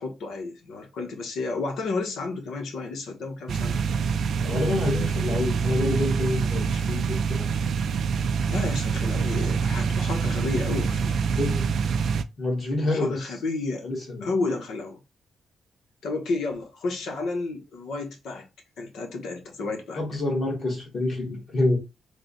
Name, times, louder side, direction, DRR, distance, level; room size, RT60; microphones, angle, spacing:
voice 1, 0.0-3.8 8.4-11.3 12.8-13.9 14.2-15.0 16.0-18.5 18.8-20.0, left 3 dB, 85° left, 1.0 m, -31 dB
sound 1, 3.5-12.2, right 6 dB, 60° right, 0.3 m, -26 dB
voice 2, 4.4-7.5 11.3-11.7 12.4-13.3 13.8-14.5 19.9-21.8, left 2 dB, 45° left, 1.3 m, -27 dB
3.3 x 2.2 x 3.9 m
cardioid pair, 145°, 0 cm